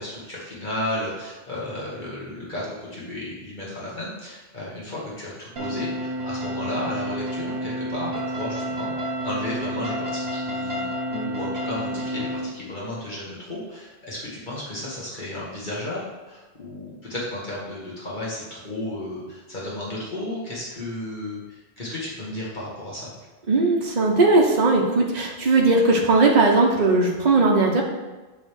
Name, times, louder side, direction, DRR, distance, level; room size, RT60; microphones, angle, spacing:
voice 1, 0.0-23.1, left 1 dB, 50° left, -7 dB, 1.8 m, -33 dB
sound 1, 5.6-12.4, equal, 75° right, 1.3 m, -30 dB
voice 2, 23.5-27.8, right 3 dB, 45° right, -1 dB, 1.0 m, -18 dB
7.8 x 3.5 x 6.3 m, 1.2 s
omnidirectional pair, 1.0 m